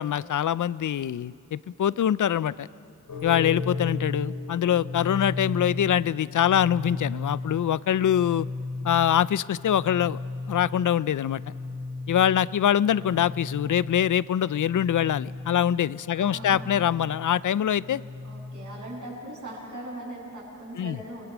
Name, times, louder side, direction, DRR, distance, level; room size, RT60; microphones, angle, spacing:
voice 1, 0.0-2.7 3.2-8.5 8.8-10.2 10.5-11.4 12.1-18.0 20.8-21.0, left 10 dB, 65° left, 19 dB, 0.5 m, -24 dB
sound 1, 3.1-18.9, left 3 dB, 90° left, 6.6 m, -36 dB
voice 2, 16.1-16.9 18.2-21.3, right 1 dB, 60° right, -9 dB, 6.9 m, -40 dB
29.5 x 21.5 x 6.1 m, 2.6 s
wide cardioid pair, 100°, 33 cm